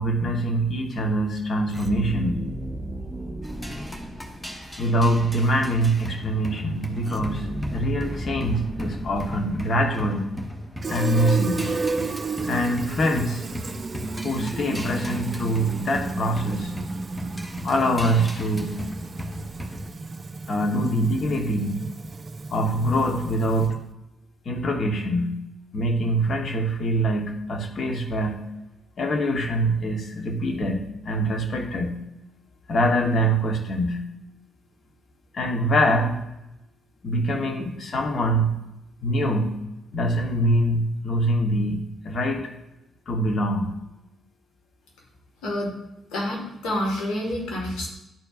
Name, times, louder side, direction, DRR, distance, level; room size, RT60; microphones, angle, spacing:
voice 1, 0.0-2.5 4.8-10.3 10.9-11.7 12.4-13.4 14.2-16.7 17.6-18.8 20.5-21.8 22.5-23.8 24.4-25.4 25.7-28.5 29.0-32.0 32.7-34.1 35.3-36.2 37.0-38.5 39.0-39.6 39.9-42.5 43.1-43.7, right 1 dB, 50° left, 3 dB, 1.1 m, -24 dB
sound 1, 1.7-5.0 7.0-10.3, right 1 dB, 10° right, 0.7 m, -35 dB
sound 2, 3.4-19.9, equal, 10° left, 1.1 m, -37 dB
Fill (with liquid), 10.8-23.9, right 4 dB, 40° right, 0.3 m, -33 dB
voice 2, 46.1-47.9, left 1 dB, 75° left, -1 dB, 1.6 m, -28 dB
10.5 x 4.5 x 2.5 m, 0.92 s
hypercardioid pair, 45°, 0 cm